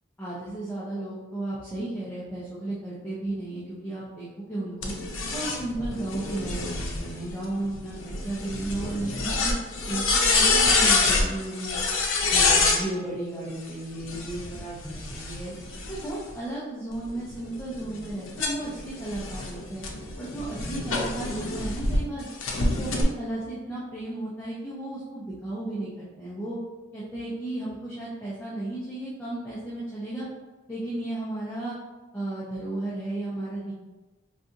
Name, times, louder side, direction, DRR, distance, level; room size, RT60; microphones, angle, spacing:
voice 1, 0.2-4.9 5.3-9.5 9.9-11.8 12.3-15.5 15.9-19.8 20.2-22.3 22.6-26.6 26.9-30.3 30.7-31.8 32.1-33.7, right 2 dB, 10° left, -9 dB, 0.6 m, -34 dB
sound 1, 4.8-12.8 14.0-16.3 16.9-22.0 22.4-23.0, left 3 dB, 85° left, 0.6 m, -27 dB
4.1 x 2.4 x 2.5 m, 1.2 s
head